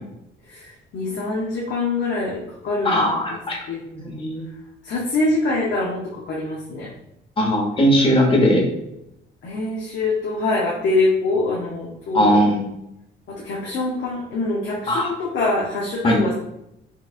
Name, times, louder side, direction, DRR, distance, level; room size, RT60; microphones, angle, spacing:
voice 1, 0.5-3.4 3.7-4.2 4.8-6.9 9.4-12.4 13.3-16.3, left 2 dB, 65° left, -4 dB, 0.8 m, -24 dB
voice 2, 2.8-3.6 4.0-4.5 7.4-8.6 12.1-12.6 14.9-15.1 16.0-16.2, equal, 25° left, 0 dB, 1.1 m, -18 dB
4.5 x 2.4 x 2.4 m, 0.83 s
cardioid pair, 90°, 20 cm